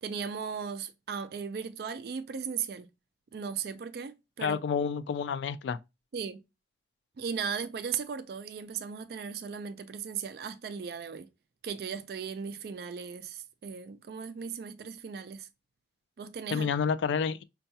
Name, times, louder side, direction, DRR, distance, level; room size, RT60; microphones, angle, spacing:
voice 1, 0.0-2.9 3.3-4.6 6.1-6.4 7.2-11.3 11.6-15.5 16.2-16.7, right 6 dB, 60° right, 0.3 m, -37 dB
voice 2, 4.4-5.8 16.5-17.4, left 6 dB, 80° left, 0.3 m, -29 dB
5.4 x 2.3 x 2.7 m
head